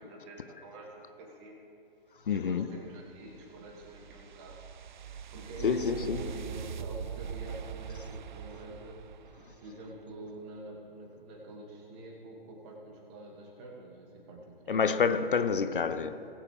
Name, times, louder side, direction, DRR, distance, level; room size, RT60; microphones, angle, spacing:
voice 1, 0.0-1.6 2.3-4.6 5.3-9.0 9.6-14.8, right 1 dB, 25° right, 2.2 m, -46 dB
voice 2, 2.3-2.7 5.6-6.2 14.7-16.3, left 6 dB, 60° left, 0.6 m, -28 dB
sound 1, 2.8-10.0, right 7 dB, 55° right, 0.5 m, -43 dB
19.5 x 8.2 x 3.4 m
figure-of-eight pair, 130°, 29 cm